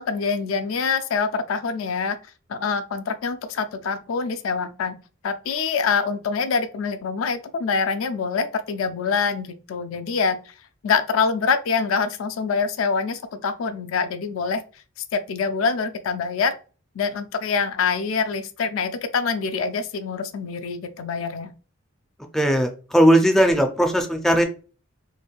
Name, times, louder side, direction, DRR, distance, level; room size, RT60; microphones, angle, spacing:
voice 1, 0.0-2.2 2.5-5.0 5.2-10.4 10.8-14.6 15.1-16.5 17.0-21.5, left 5 dB, 85° left, 0.4 m, -25 dB
voice 2, 22.3-24.4, equal, ahead, 0.4 m, -18 dB
3.1 x 2.5 x 2.3 m
head